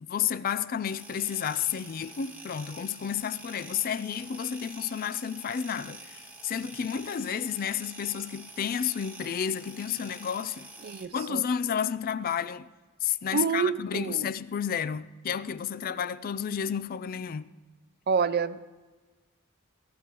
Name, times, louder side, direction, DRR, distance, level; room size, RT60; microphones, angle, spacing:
voice 1, 0.0-10.7 11.1-12.7 13.0-17.5, left 8 dB, 45° left, 0.3 m, -31 dB
sound 1, 0.9-11.1, right 2 dB, 10° right, 1.3 m, -47 dB
voice 2, 10.8-11.4 13.3-14.3 18.1-18.6, right 5 dB, 50° right, 0.4 m, -28 dB
22.0 x 16.0 x 3.0 m
head